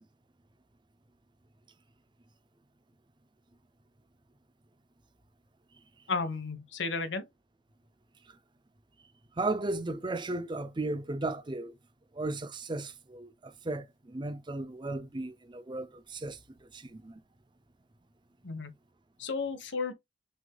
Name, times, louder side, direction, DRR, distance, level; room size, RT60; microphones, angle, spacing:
voice 1, 6.1-7.3 18.4-18.7 19.2-19.9, left 4 dB, 85° left, 1.2 m, -33 dB
voice 2, 9.4-11.7 12.1-16.4 16.7-17.2, right 2 dB, 25° right, 0.5 m, -35 dB
6.0 x 3.6 x 2.2 m
head